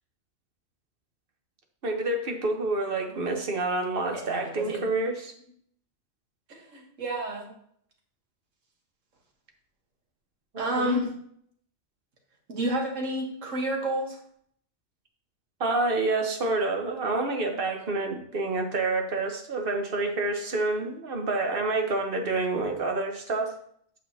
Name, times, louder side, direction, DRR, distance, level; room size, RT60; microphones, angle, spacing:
voice 1, 1.8-5.3 10.5-11.0 15.6-23.5, right 2 dB, 50° right, 3 dB, 1.3 m, -28 dB
voice 2, 4.1-4.8 6.5-7.5 10.6-11.1 12.5-14.2, right 1 dB, 85° right, 1 dB, 1.8 m, -30 dB
8.6 x 6.9 x 2.8 m, 0.66 s
omnidirectional pair, 1.3 m